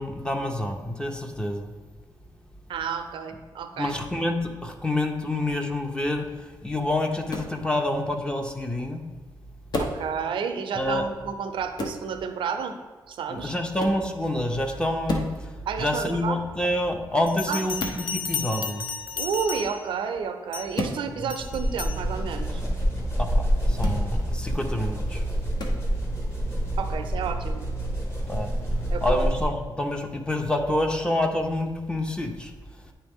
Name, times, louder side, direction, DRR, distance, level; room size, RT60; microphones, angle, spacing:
voice 1, 0.0-1.7 3.8-6.3 6.6-9.0 10.7-11.0 13.3-15.5 15.8-18.9 21.2-21.3 23.2-25.2 28.3-28.5 29.0-32.5, left 1 dB, 10° left, 4 dB, 0.6 m, -27 dB
voice 2, 2.7-4.0 9.8-12.8 13.1-13.5 15.7-16.4 17.5-17.6 19.2-22.6 26.8-27.7 28.9-29.3, right 6 dB, 90° right, 7 dB, 0.5 m, -31 dB
sound 1, 7.3-7.6 9.7-10.1 11.8-12.0 13.8-14.0 15.1-15.4 17.8-18.0 20.7-21.0 23.8-24.0 25.6-25.8, left 2 dB, 55° left, 0.9 m, -30 dB
Bell, 17.3-20.0 20.5-20.8 21.3-22.0, left 6 dB, 80° left, 0.4 m, -33 dB
sound 2, 21.4-29.7, equal, 30° left, 1.4 m, -27 dB
9.6 x 3.3 x 3.5 m, 1.3 s
wide cardioid pair, 115°, 8 cm